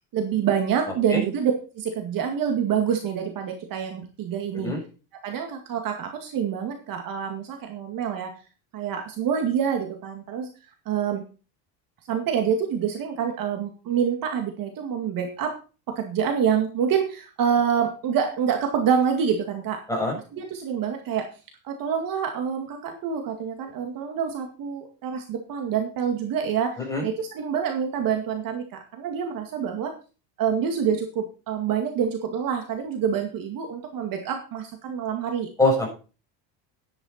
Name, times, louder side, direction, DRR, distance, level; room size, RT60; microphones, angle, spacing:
voice 1, 0.1-4.7 5.2-8.3 8.7-10.5 10.9-11.2 12.1-15.5 16.0-19.8 20.1-21.3 21.6-29.9 30.4-35.5, right 7 dB, 45° right, 4 dB, 2.2 m, -26 dB
voice 2, 4.6-4.8 19.9-20.1 26.9-27.0 35.6-35.9, left 2 dB, 5° left, -2 dB, 7.0 m, -22 dB
11.0 x 10.5 x 4.3 m, 0.35 s
cardioid pair, 145°, 46 cm